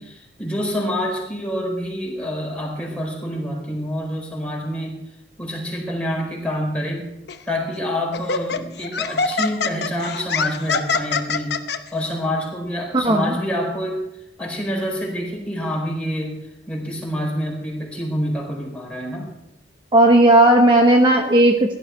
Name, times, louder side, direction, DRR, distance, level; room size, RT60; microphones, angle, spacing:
voice 1, 0.0-5.1 5.4-7.1 7.5-11.6 11.9-14.0 14.4-19.3, equal, 5° left, -2 dB, 4.6 m, -27 dB
Laughter, 7.3-7.5 8.1-11.8, left 5 dB, 65° left, 0.9 m, -24 dB
voice 2, 13.0-13.4 19.9-21.7, right 1 dB, 30° right, 3 dB, 1.0 m, -14 dB
16.5 x 12.0 x 4.7 m, 0.85 s
head